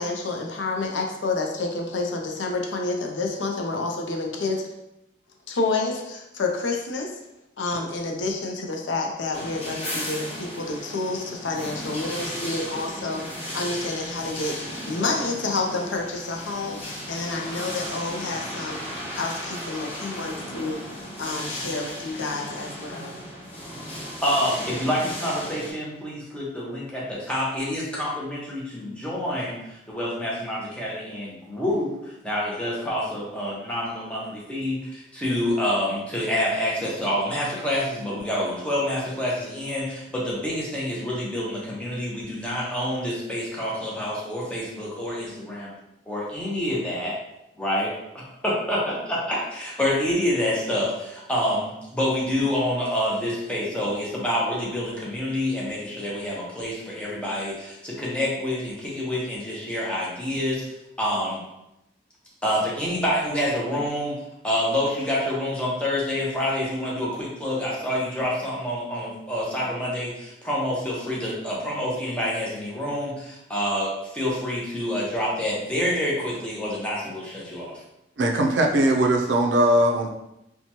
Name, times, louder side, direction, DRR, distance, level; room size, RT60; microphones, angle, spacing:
voice 1, 0.0-4.7 5.5-7.1 7.6-13.3 13.5-23.2, left 3 dB, 80° left, 2 dB, 0.5 m, -29 dB
sound 1, 9.3-25.7, equal, 35° left, 0.9 m, -35 dB
voice 2, 24.2-45.7 46.1-47.2 47.6-61.4 62.4-64.2 64.4-77.8, left 1 dB, 5° left, -6 dB, 0.6 m, -27 dB
voice 3, 78.2-80.1, right 1 dB, 70° right, 1 dB, 0.4 m, -20 dB
2.9 x 2.2 x 2.8 m, 0.87 s
head